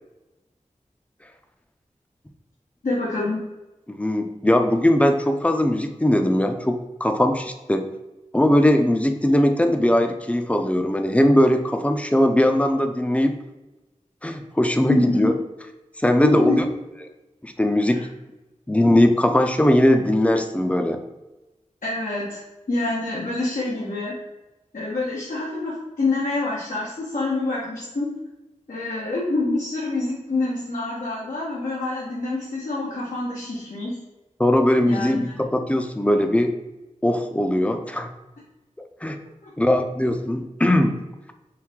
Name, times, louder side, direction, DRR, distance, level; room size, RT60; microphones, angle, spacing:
voice 1, 2.8-3.4 14.9-15.3 16.2-16.6 21.8-22.4 22.7-24.1 24.7-28.1 28.7-34.0 34.8-35.4 39.4-39.5, left 2 dB, 85° left, -7 dB, 1.0 m, -26 dB
voice 2, 3.9-7.9 8.3-13.4 14.2-15.4 16.0-16.6 17.4-18.1 18.7-21.0 34.4-36.5 37.0-38.1 39.0-39.2 39.6-41.0, left 1 dB, 10° left, 6 dB, 0.5 m, -20 dB
4.6 x 2.7 x 3.5 m, 1.0 s
wide cardioid pair, 55°, 13 cm